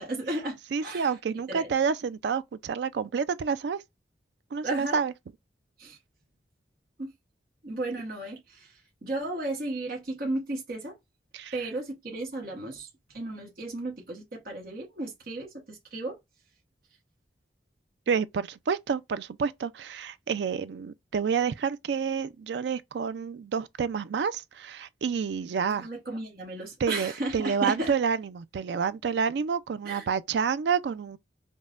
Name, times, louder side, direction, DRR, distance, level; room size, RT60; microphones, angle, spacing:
voice 1, 0.0-1.1 1.5-1.7 4.6-5.0 5.8-6.0 7.0-7.1 7.6-11.0 11.5-12.9 13.1-16.2 25.7-27.9 29.8-30.1, right 2 dB, 50° right, 1.0 m, -34 dB
voice 2, 0.7-3.8 4.5-5.1 11.3-11.6 18.1-25.9 26.8-31.2, right 6 dB, 75° right, 0.4 m, -29 dB
5.2 x 2.1 x 2.4 m
head